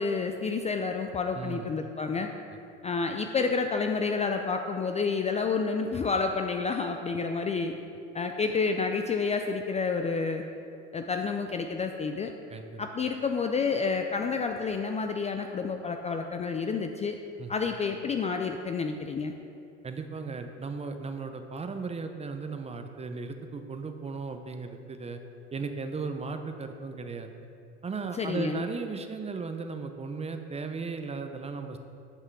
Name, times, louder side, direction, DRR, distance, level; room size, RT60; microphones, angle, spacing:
voice 1, 0.0-2.3 2.8-7.7 8.1-10.4 10.9-12.3 12.8-17.2 17.5-19.3 28.1-28.6, left 4 dB, 20° left, 5 dB, 0.4 m, -29 dB
voice 2, 1.3-1.7 12.5-12.8 17.4-17.5 19.8-25.2 25.5-27.3 27.8-31.8, right 4 dB, 20° right, 7 dB, 0.6 m, -36 dB
9.9 x 5.6 x 4.7 m, 2.7 s
hypercardioid pair, 90°, 34 cm